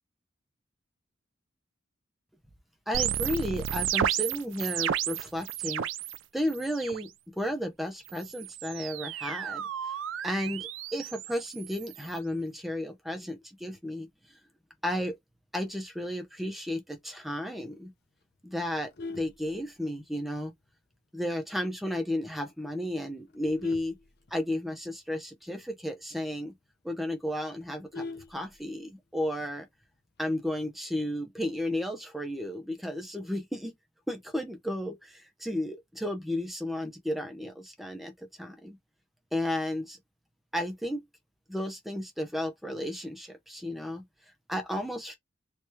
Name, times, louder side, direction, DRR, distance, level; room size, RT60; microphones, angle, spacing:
voice 1, 2.9-5.9 6.3-9.6 10.2-14.1 14.8-15.2 15.5-17.9 18.4-18.9 19.2-20.5 21.1-24.0 24.3-26.5 26.8-28.0 28.3-29.7 30.2-33.7 34.1-38.8 39.3-40.0 40.5-41.0 41.5-44.0 44.5-45.1, left 1 dB, ahead, 0.7 m, -33 dB
sound 1, 2.9-6.2 6.5-7.0 8.1-12.2, right 10 dB, 90° right, 0.4 m, -33 dB
Vehicle horn car horn honking, 18.7-20.2 20.7-20.9 21.2-21.3 21.7-21.8 22.1-22.5 23.0-24.9 25.2-25.3 25.6-25.7 26.1-26.2 26.6-26.7 26.9-29.0 30.2-30.6, left 3 dB, 55° left, 0.7 m, -43 dB
3.2 x 3.0 x 3.1 m
head